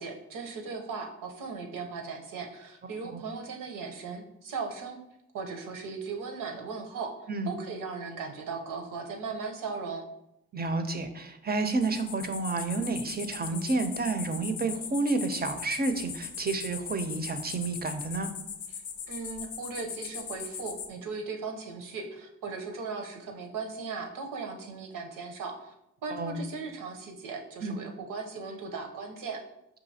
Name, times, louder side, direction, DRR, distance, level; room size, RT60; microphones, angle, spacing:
voice 1, 0.0-5.0 5.3-7.1 7.5-10.1 19.1-25.7 26.0-29.4, right 4 dB, 80° right, 3 dB, 0.7 m, -37 dB
voice 2, 10.5-18.3 26.1-26.4 27.6-27.8, right 3 dB, 30° right, 7 dB, 0.5 m, -30 dB
sound 1, 11.7-20.9, left 7 dB, 75° left, 0.5 m, -40 dB
4.8 x 2.7 x 2.7 m, 0.82 s
supercardioid pair, 50°, 33 cm